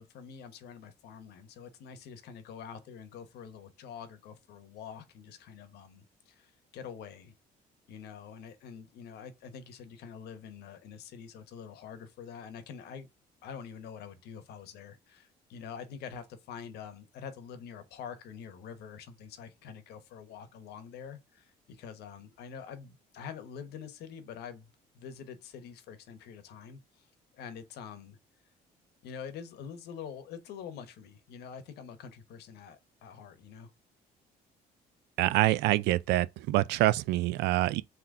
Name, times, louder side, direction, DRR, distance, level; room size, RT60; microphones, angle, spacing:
voice 1, 0.0-7.3 7.9-13.1 13.4-24.7 24.9-27.1 27.3-28.2 29.0-33.7, left 7 dB, 75° left, 1.0 m, -46 dB
voice 2, 35.2-37.8, right 17 dB, 85° right, 0.4 m, -26 dB
3.9 x 2.9 x 4.7 m
cardioid pair, 110°, 17 cm